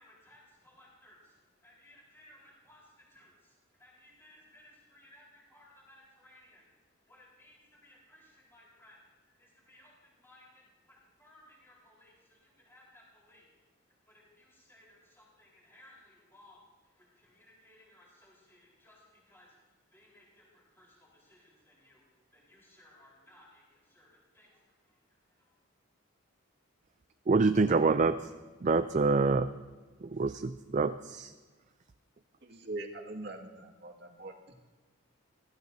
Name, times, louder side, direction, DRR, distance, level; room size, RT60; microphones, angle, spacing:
voice 1, 0.0-1.4 1.6-6.7 7.1-13.5 14.1-22.0 22.3-25.0 25.4-25.5, left 1 dB, 10° left, -4 dB, 4.1 m, -61 dB
voice 2, 27.3-28.3 28.6-29.5 30.0-31.3, right 3 dB, 35° right, 10 dB, 0.4 m, -26 dB
voice 3, 32.4-34.3, right 2 dB, 50° right, 2 dB, 2.0 m, -42 dB
23.5 x 16.0 x 2.7 m, 1.3 s
head